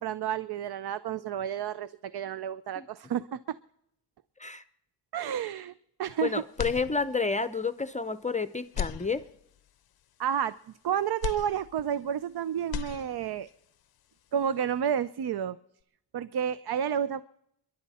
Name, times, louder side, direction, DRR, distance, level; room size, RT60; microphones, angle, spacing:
voice 1, 0.0-3.6 5.1-5.7 6.0-6.4 10.2-10.6 10.8-13.5 14.3-15.6 16.1-17.2, right 9 dB, 75° right, 16 dB, 0.6 m, -30 dB
voice 2, 6.2-9.2, left 4 dB, 20° left, 12 dB, 0.6 m, -30 dB
sound 1, 6.5-7.5 7.9-8.0 8.6-9.7 11.2-12.3 12.6-13.5, left 10 dB, 65° left, 0.5 m, -37 dB
30.0 x 11.5 x 4.2 m, 0.77 s
wide cardioid pair, 115°, 39 cm